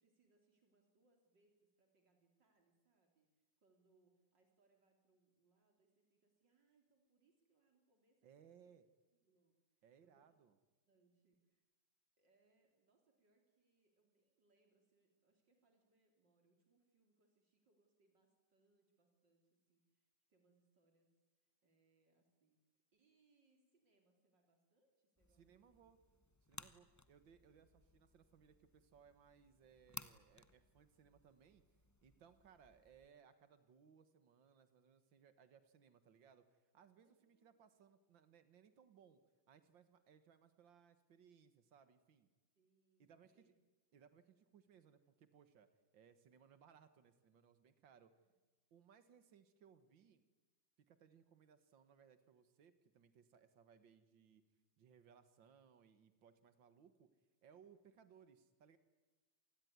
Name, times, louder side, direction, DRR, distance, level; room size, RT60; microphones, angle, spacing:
voice 1, 0.0-8.7 9.1-10.4 10.9-11.6 12.2-22.6 22.9-25.9 37.0-37.6 42.6-43.5 48.2-48.3, right 3 dB, 70° right, 3 dB, 3.8 m, -79 dB
voice 2, 8.2-8.9 9.8-10.6 25.4-26.0 26.5-31.6 32.0-39.2 39.5-42.3 43.0-43.5 43.9-48.1 48.7-50.2 50.8-54.4 54.8-57.1 57.4-58.8, right 7 dB, 85° right, 11 dB, 2.2 m, -67 dB
sound 1, 25.2-33.1, left 2 dB, 15° left, 0.6 m, -59 dB
27.5 x 20.0 x 9.6 m, 1.2 s
omnidirectional pair, 2.0 m